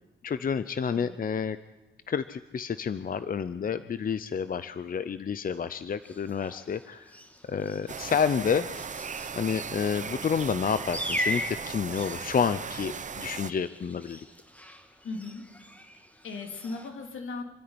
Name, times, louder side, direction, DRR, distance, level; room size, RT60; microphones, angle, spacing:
voice 1, 0.2-1.6 2.1-7.1 7.5-8.7 9.4-14.3, left 6 dB, 45° left, 13 dB, 0.6 m, -29 dB
sound 1, 6.0-16.9, equal, 5° left, 2.1 m, -40 dB
sound 2, 7.9-13.5, right 6 dB, 40° right, 0.7 m, -38 dB
voice 2, 15.0-15.4 15.9-17.4, left 3 dB, 80° left, 4 dB, 3.1 m, -38 dB
26.5 x 10.0 x 9.7 m, 1.1 s
wide cardioid pair, 105°, 20 cm